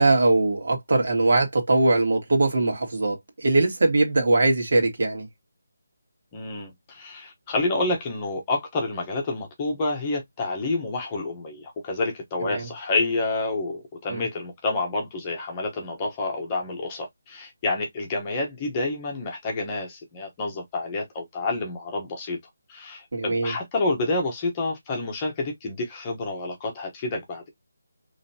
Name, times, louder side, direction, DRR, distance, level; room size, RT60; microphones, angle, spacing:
voice 1, 0.0-5.3 12.4-12.7 14.1-14.2 23.1-23.5, right 2 dB, 55° right, 2.0 m, -21 dB
voice 2, 6.3-22.4 22.7-27.5, left 2 dB, 15° left, 1.0 m, -28 dB
5.1 x 3.2 x 2.8 m
figure-of-eight pair, 175°, 0 cm